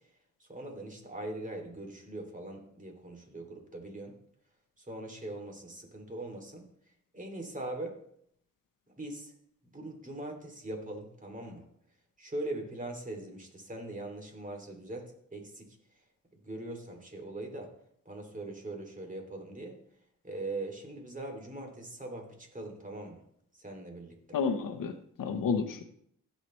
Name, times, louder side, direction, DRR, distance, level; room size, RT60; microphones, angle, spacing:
voice 1, 0.4-4.2 4.8-6.7 7.1-8.0 9.0-9.3 9.7-11.6 12.2-15.8 16.4-17.7 18.0-19.8 20.2-23.2 23.5-24.4, right 2 dB, 25° right, 2 dB, 2.7 m, -41 dB
voice 2, 24.3-25.8, left 5 dB, 90° left, 8 dB, 1.0 m, -31 dB
15.5 x 6.7 x 3.2 m, 0.69 s
cardioid pair, 70°, 32 cm